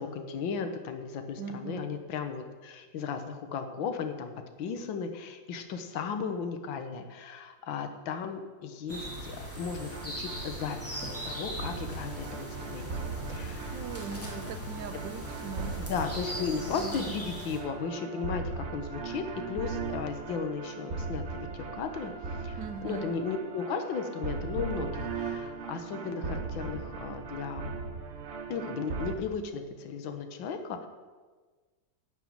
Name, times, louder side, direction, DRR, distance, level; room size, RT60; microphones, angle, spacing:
voice 1, 0.0-4.3 4.6-13.0 13.3-13.8 15.8-22.1 22.4-22.6 22.8-27.7 28.5-30.9, left 5 dB, 85° left, 7 dB, 1.8 m, -35 dB
voice 2, 1.4-1.9 13.7-15.8 16.7-17.2 22.6-23.1, right 5 dB, 70° right, 9 dB, 1.5 m, -40 dB
sound 1, 8.9-17.6, equal, 5° left, 2.7 m, -40 dB
sound 2, 9.7-29.2, right 4 dB, 50° right, 0.9 m, -38 dB
11.5 x 6.2 x 8.9 m, 1.4 s
omnidirectional pair, 2.1 m